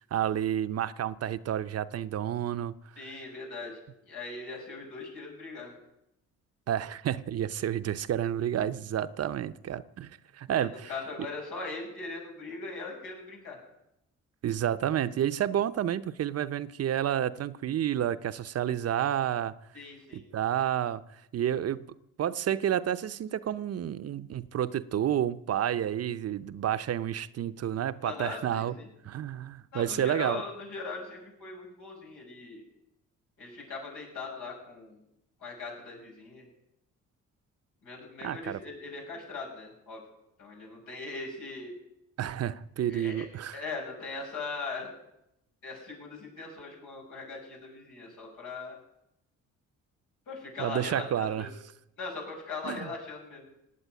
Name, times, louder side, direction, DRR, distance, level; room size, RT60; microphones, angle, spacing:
voice 1, 0.1-2.7 6.7-10.9 14.4-19.5 20.1-21.0 21.3-21.9 22.2-28.7 29.0-30.4 38.2-38.6 42.2-43.6 50.6-51.5 52.6-52.9, right 10 dB, 55° right, 0.7 m, -30 dB
voice 2, 3.0-5.7 10.5-13.6 19.7-20.2 28.0-28.9 29.7-32.6 33.4-35.0 35.4-36.5 37.8-40.0 40.4-41.7 42.8-43.2 43.5-44.9 45.6-48.8 50.3-51.5 52.0-53.5, left 3 dB, 85° left, 6.6 m, -40 dB
18.0 x 8.1 x 9.2 m
cardioid pair, 90°, 30 cm